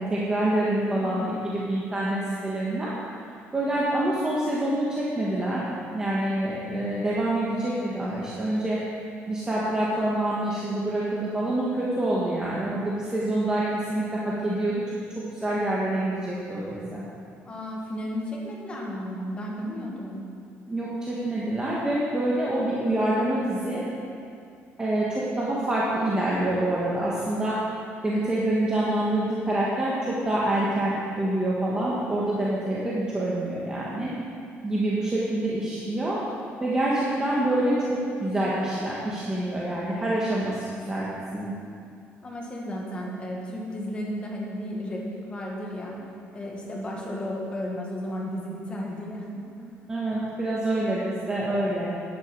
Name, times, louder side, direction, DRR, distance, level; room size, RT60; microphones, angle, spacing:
voice 1, 0.0-2.9 3.5-5.6 5.9-8.8 9.3-15.0 15.3-17.0 20.7-23.8 24.8-27.6 28.0-34.1 34.6-36.2 36.6-41.5 49.9-51.9, right 1 dB, 15° right, -7 dB, 1.5 m, -26 dB
voice 2, 17.4-20.2 42.2-46.0 46.3-49.3 49.6-49.8, equal, 20° left, -2 dB, 2.0 m, -33 dB
10.5 x 10.0 x 5.4 m, 2.4 s
cardioid pair, 150°, 5 cm